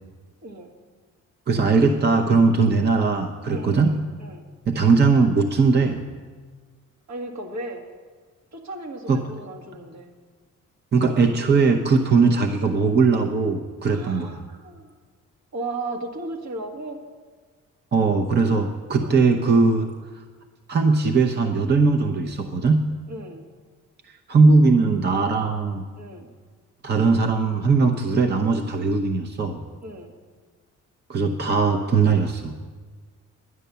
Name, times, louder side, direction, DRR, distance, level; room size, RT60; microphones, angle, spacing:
voice 1, 1.5-3.9 4.7-6.0 9.1-9.2 10.9-14.4 17.9-19.9 20.7-22.8 24.3-25.8 26.8-29.6 31.1-32.5, right 4 dB, 35° right, 3 dB, 0.9 m, -19 dB
voice 2, 3.5-4.4 7.1-7.8 8.5-10.1 13.9-14.9 15.5-17.0 18.9-19.2 23.1-23.5 26.0-26.3 29.8-30.1, right 2 dB, 65° right, 1 dB, 1.9 m, -35 dB
11.0 x 9.0 x 6.9 m, 1.5 s
cardioid pair, 90°, 30 cm